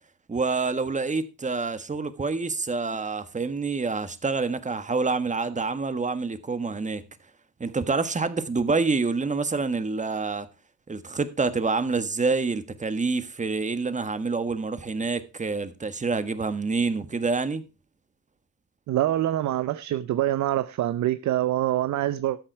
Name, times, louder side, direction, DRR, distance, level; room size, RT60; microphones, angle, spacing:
voice 1, 0.3-7.0 7.6-10.5 10.9-17.6, right 4 dB, 25° right, 1.5 m, -27 dB
voice 2, 18.9-22.4, right 13 dB, 70° right, 0.7 m, -25 dB
13.0 x 7.7 x 4.7 m
cardioid pair, 90°, 30 cm